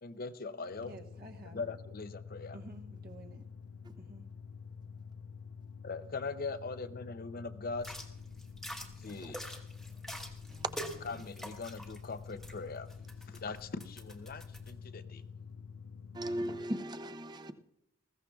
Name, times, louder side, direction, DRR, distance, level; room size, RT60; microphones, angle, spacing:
voice 1, 0.0-0.9 1.5-2.6 5.8-7.9 9.0-9.4 11.1-12.9 13.3-15.2, left 4 dB, 45° left, 0.6 m, -41 dB
sound 1, 0.6-16.7, left 6 dB, 90° left, 0.4 m, -48 dB
voice 2, 0.8-1.7 2.5-3.4 4.0-4.2, right 2 dB, 45° right, 1.1 m, -51 dB
sound 2, 7.7-14.7, equal, ahead, 1.0 m, -47 dB
voice 3, 10.5-11.2 16.1-17.5, right 1 dB, 20° right, 0.6 m, -38 dB
20.0 x 15.5 x 2.3 m
head